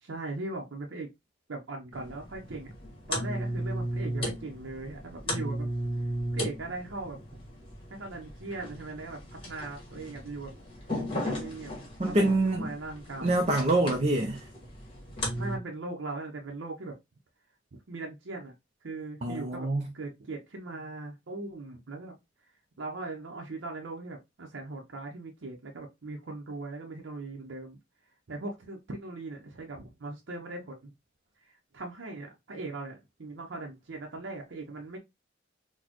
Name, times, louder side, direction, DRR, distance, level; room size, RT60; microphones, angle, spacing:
voice 1, 0.0-1.1 1.5-2.7 3.1-5.7 6.3-7.2 7.9-10.5 11.2-11.7 12.0-13.4 15.3-16.9 17.9-18.5 18.8-19.7 19.9-22.1 22.8-27.8 28.3-30.9 31.7-35.0, right 2 dB, 80° right, 0.7 m, -39 dB
sound 1, 1.9-15.6, equal, 30° left, 1.4 m, -36 dB
voice 2, 12.0-12.7 13.2-14.4 19.2-19.8, right 2 dB, 35° right, 0.5 m, -25 dB
4.1 x 2.2 x 2.9 m
head